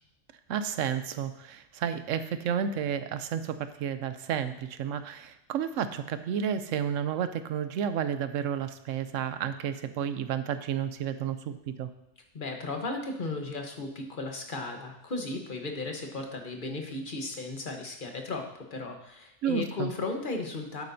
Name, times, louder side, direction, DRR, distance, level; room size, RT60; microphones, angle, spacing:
voice 1, 0.5-11.9 19.4-19.9, right 8 dB, 85° right, 11 dB, 1.0 m, -31 dB
voice 2, 12.3-20.8, left 3 dB, 45° left, 3 dB, 1.2 m, -35 dB
11.0 x 8.6 x 2.7 m, 0.80 s
omnidirectional pair, 1.3 m